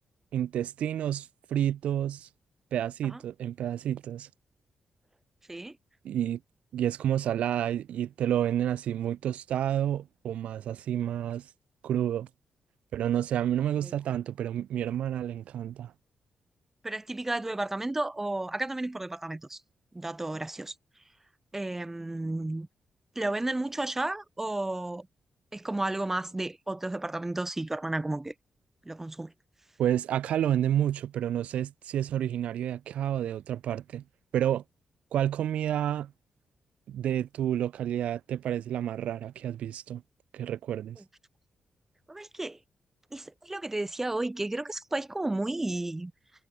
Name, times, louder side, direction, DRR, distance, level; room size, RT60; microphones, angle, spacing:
voice 1, 0.3-2.3 2.7-4.3 6.0-6.4 6.7-11.4 11.8-12.3 12.9-15.9 29.8-34.0 34.3-34.6 35.1-36.1 36.9-40.0 40.3-41.0, right 10 dB, 90° right, 2.5 m, -29 dB
voice 2, 16.8-19.6 19.9-20.7 21.5-22.7 23.1-25.1 25.5-28.3 28.8-29.3 41.0-41.1 42.1-42.6 43.1-46.1, right 2 dB, 15° right, 5.1 m, -32 dB
cardioid pair, 95°, 2 cm